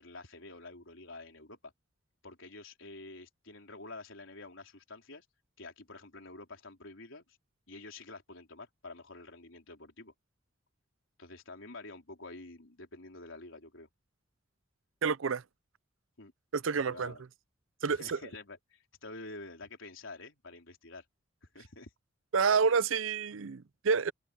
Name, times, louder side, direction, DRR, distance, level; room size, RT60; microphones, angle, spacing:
voice 1, 0.0-1.7 2.2-5.3 5.6-7.3 7.7-10.1 11.2-13.9 16.2-16.3 16.9-17.2 17.9-21.0 21.4-21.9, left 2 dB, 75° left, 3.9 m, -48 dB
voice 2, 15.0-15.4 16.5-17.1 17.8-18.2 22.3-24.1, right 5 dB, 75° right, 0.6 m, -28 dB
head